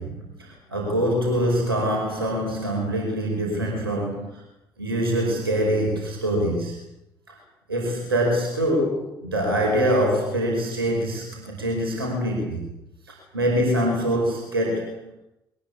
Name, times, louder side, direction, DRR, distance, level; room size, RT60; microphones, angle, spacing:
voice 1, 0.0-4.4 4.8-6.8 7.3-7.4 7.7-12.7 13.1-15.1, equal, 80° right, 1 dB, 5.1 m, -24 dB
22.5 x 20.0 x 8.4 m, 0.86 s
figure-of-eight pair, 45°, 12 cm